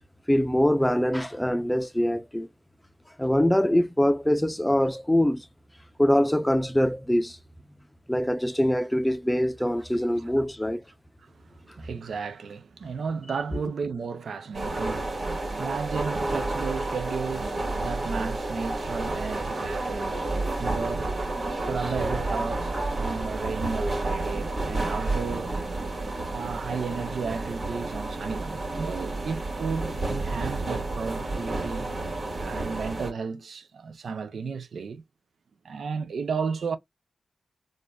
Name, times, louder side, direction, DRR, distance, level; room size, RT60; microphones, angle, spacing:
voice 1, 0.3-2.5 3.2-5.4 6.0-7.4 8.1-10.8, equal, 5° left, 0.6 m, -23 dB
voice 2, 11.2-21.2 21.7-22.7 23.0-25.6 26.3-31.9 32.4-35.0 35.6-36.8, right 5 dB, 75° right, 0.5 m, -33 dB
sound 1, 14.5-33.1, right 2 dB, 60° right, 2.0 m, -30 dB
4.2 x 2.4 x 2.3 m
cardioid pair, 55°, 0 cm